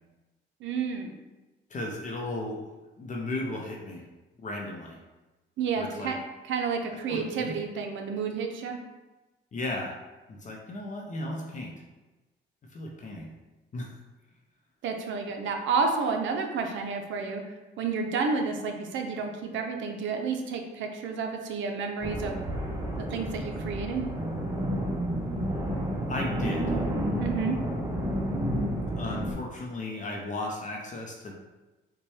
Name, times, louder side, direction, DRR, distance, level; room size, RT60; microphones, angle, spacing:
voice 1, 0.6-1.1 5.6-6.2 6.4-8.8 14.8-17.4 17.8-22.4 23.1-24.1 27.2-27.6, right 5 dB, 75° right, 4 dB, 0.5 m, -30 dB
voice 2, 1.7-2.6 3.0-4.0 4.4-5.0 5.8-6.1 7.1-7.5 9.5-9.9 10.3-11.7 12.7-13.3 13.7-13.9 26.1-26.8 29.0-31.3, left 2 dB, 40° left, -1 dB, 0.6 m, -35 dB
sound 1, 22.0-29.3, equal, 15° right, 0.7 m, -30 dB
4.0 x 2.2 x 3.1 m, 1.1 s
cardioid pair, 90°, 20 cm